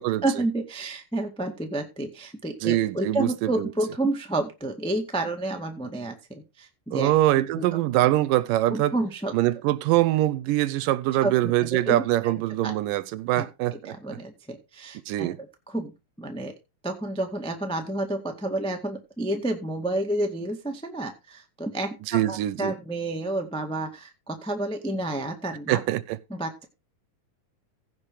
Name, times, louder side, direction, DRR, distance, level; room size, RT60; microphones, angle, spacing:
voice 1, 0.0-7.6 8.7-9.3 11.2-11.3 11.7-12.3 12.6-12.7 13.4-15.3 15.7-15.9 16.2-16.5 16.8-25.8 26.3-26.6, right 2 dB, 5° left, 0.6 m, -30 dB
voice 2, 2.6-3.7 6.9-8.9 9.3-14.2 15.1-15.4 22.1-22.7 25.7-26.2, right 15 dB, 80° right, 2.3 m, -24 dB
16.0 x 5.3 x 4.8 m
omnidirectional pair, 4.0 m